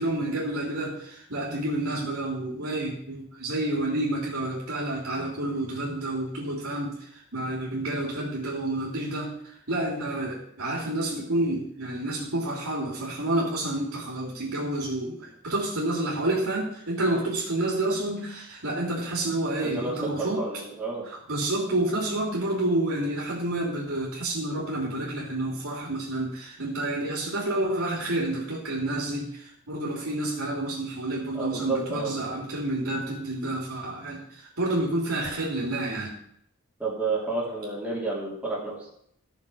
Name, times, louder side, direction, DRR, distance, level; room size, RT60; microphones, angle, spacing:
voice 1, 0.0-20.4 21.3-36.1, right 1 dB, 75° right, -4 dB, 3.2 m, -29 dB
voice 2, 19.6-21.1 31.3-32.2 36.8-38.9, right 3 dB, 5° right, -7 dB, 3.3 m, -30 dB
15.0 x 6.8 x 5.7 m, 0.68 s
head